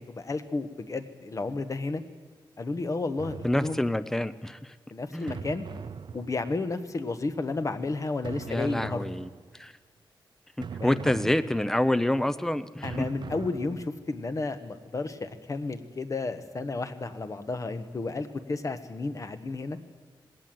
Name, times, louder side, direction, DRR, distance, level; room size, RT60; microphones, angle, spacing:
voice 1, 0.0-2.0 2.6-3.8 4.9-5.6 6.1-9.1 10.8-11.1 12.8-19.8, left 3 dB, 40° left, 10 dB, 1.2 m, -32 dB
sound 1, 3.2-4.2 5.3-6.9 8.2-9.7 10.6-12.1 12.8-14.2, right 6 dB, 60° right, 0.6 m, -41 dB
voice 2, 3.4-4.7 5.1-5.4 8.5-9.3 9.5-9.7 10.6-13.1, left 1 dB, 5° left, 14 dB, 0.6 m, -27 dB
19.5 x 18.0 x 7.8 m, 1.4 s
wide cardioid pair, 140°, 9 cm